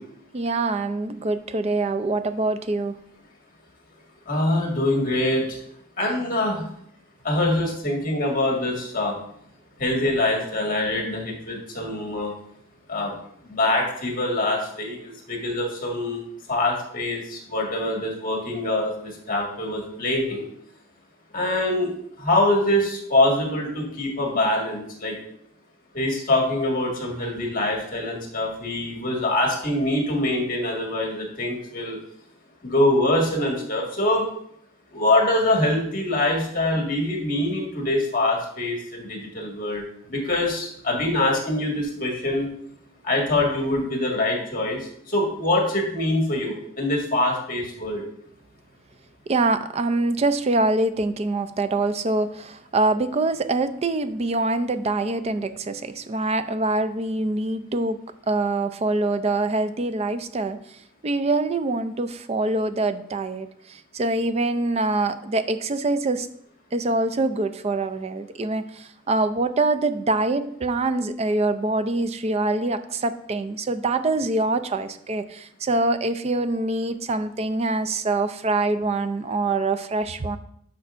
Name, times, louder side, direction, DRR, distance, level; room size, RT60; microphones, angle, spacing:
voice 1, 0.3-3.0 49.3-58.0 58.3-60.6 61.0-63.5 63.9-66.3 66.7-80.4, right 2 dB, 35° right, 11 dB, 0.4 m, -24 dB
voice 2, 4.3-5.6 6.0-6.7 7.2-9.1 9.8-12.3 12.9-13.1 13.4-16.2 16.5-20.5 21.3-21.9 22.2-25.2 25.9-32.0 32.6-34.2 34.9-39.8 40.1-42.5 43.0-48.0, left 1 dB, 45° left, 0 dB, 1.8 m, -24 dB
10.5 x 5.6 x 2.5 m, 0.69 s
head